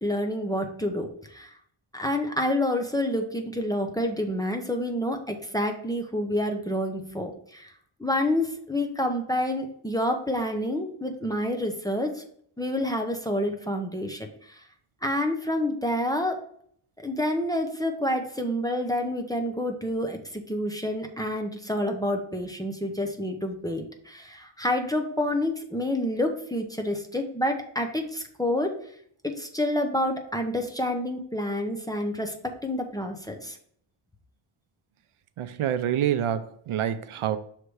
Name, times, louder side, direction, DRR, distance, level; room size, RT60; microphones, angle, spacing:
voice 1, 0.0-1.5 1.9-7.7 8.0-12.2 12.6-14.6 15.0-16.4 17.0-28.8 29.2-33.6, left 1 dB, 10° left, 0.6 m, -28 dB
voice 2, 35.4-37.4, right 10 dB, 85° right, 0.6 m, -27 dB
6.5 x 3.3 x 4.6 m
wide cardioid pair, 175°, 49 cm